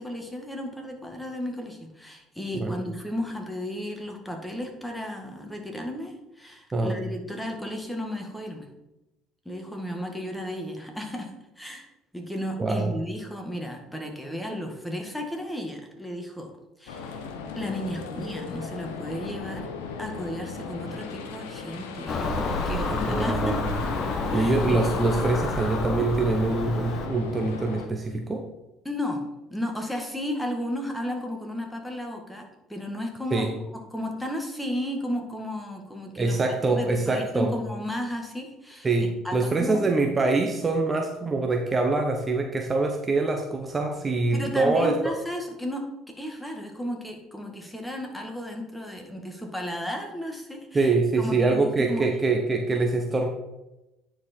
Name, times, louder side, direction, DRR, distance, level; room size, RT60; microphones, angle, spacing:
voice 1, 0.0-8.7 9.5-11.9 12.1-16.5 16.8-17.2 17.6-19.7 20.0-23.6 24.3-24.8 28.8-29.2 29.5-33.5 33.7-36.4 36.7-39.8 44.3-45.8 46.2-50.9 51.2-52.0, equal, 5° left, 2 dB, 1.8 m, -34 dB
voice 2, 12.6-12.9 22.9-23.6 24.3-28.4 33.3-33.5 36.2-37.5 38.8-45.1 50.7-53.3, right 3 dB, 25° right, 2 dB, 1.0 m, -24 dB
sound 1, 16.9-27.9, left 5 dB, 90° left, 0.8 m, -38 dB
Car passing by / Engine, 22.1-27.1, left 3 dB, 45° left, 1.2 m, -29 dB
9.6 x 4.5 x 4.4 m, 0.97 s
supercardioid pair, 75°, 0 cm